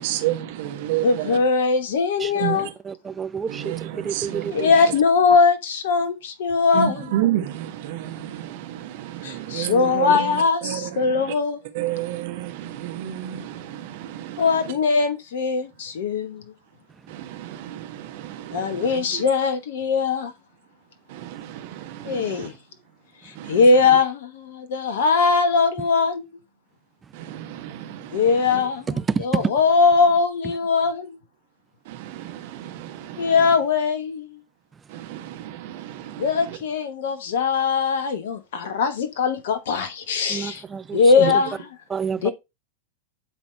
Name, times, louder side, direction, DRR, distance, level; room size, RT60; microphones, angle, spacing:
voice 1, 0.0-1.4 2.4-2.7 3.5-4.7 6.7-11.3 11.7-14.7 17.1-19.3 21.1-22.5 23.3-23.6 27.1-28.7 31.8-33.5 34.9-36.6 41.2-41.3, right 12 dB, 50° right, 1.4 m, -31 dB
voice 2, 1.0-2.7 4.5-7.0 9.2-11.6 14.4-16.4 18.5-20.3 22.0-22.5 23.2-26.2 28.1-31.2 33.2-34.4 36.2-40.6 40.9-41.6 42.2-42.3, left 4 dB, 55° left, 1.2 m, -21 dB
voice 3, 2.2-4.7 29.1-29.5 40.3-41.0 41.9-42.3, right 6 dB, 20° right, 0.6 m, -28 dB
10.5 x 4.0 x 4.5 m
figure-of-eight pair, 90°, 0 cm